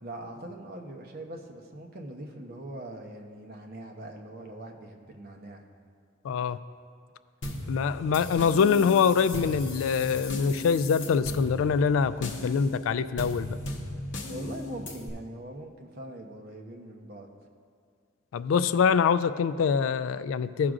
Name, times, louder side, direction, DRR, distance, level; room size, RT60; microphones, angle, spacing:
voice 1, 0.0-5.6 14.3-17.3, right 1 dB, 50° right, 2 dB, 0.9 m, -42 dB
voice 2, 6.2-6.6 7.7-13.6 18.3-20.7, left 6 dB, 85° left, 13 dB, 0.3 m, -24 dB
sound 1, 7.4-15.1, left 1 dB, 65° left, 1.0 m, -37 dB
15.5 x 6.0 x 2.5 m, 2.1 s
head